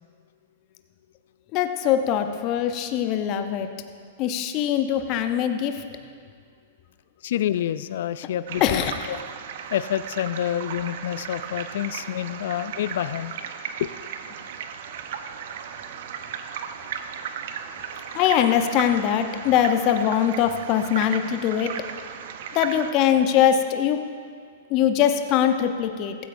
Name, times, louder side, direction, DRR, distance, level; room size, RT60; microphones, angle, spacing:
voice 1, 1.5-3.7 4.2-5.8 8.6-9.1 18.1-21.7 22.5-24.0 24.7-26.2, left 9 dB, 40° left, 7 dB, 0.7 m, -22 dB
voice 2, 7.2-9.2 9.7-13.4 13.8-13.9, left 11 dB, 65° left, 14 dB, 0.3 m, -28 dB
sound 1, 8.5-22.9, right 8 dB, 60° right, 0.8 m, -36 dB
15.5 x 13.0 x 2.6 m, 2.2 s
hypercardioid pair, 110°, 0 cm